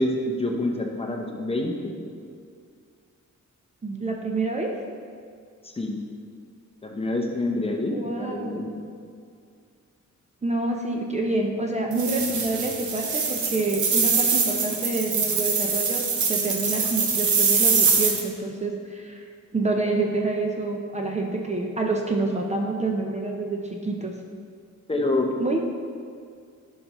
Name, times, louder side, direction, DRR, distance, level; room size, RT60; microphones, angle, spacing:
voice 1, 0.0-2.0 5.6-6.0 6.8-8.7 24.9-25.3, left 2 dB, 20° left, 1 dB, 0.7 m, -27 dB
voice 2, 3.8-4.7 7.9-8.5 10.4-16.0 16.3-24.1 25.4-25.6, right 2 dB, 25° right, 1 dB, 0.6 m, -27 dB
sound 1, 11.9-18.2, right 5 dB, 75° right, 1.0 m, -23 dB
11.0 x 5.5 x 3.0 m, 2.2 s
wide cardioid pair, 140°, 30 cm